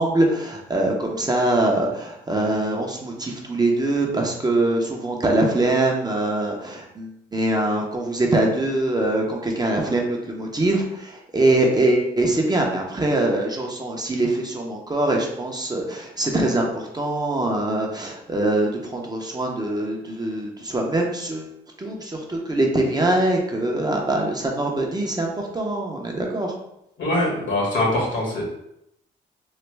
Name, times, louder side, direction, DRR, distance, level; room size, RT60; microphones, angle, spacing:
voice 1, 0.0-21.5 21.8-26.5, right 2 dB, 20° right, 0 dB, 0.6 m, -23 dB
voice 2, 27.0-28.4, left 1 dB, 70° left, -3 dB, 1.4 m, -23 dB
3.2 x 2.1 x 3.2 m, 0.80 s
cardioid pair, 90°, 20 cm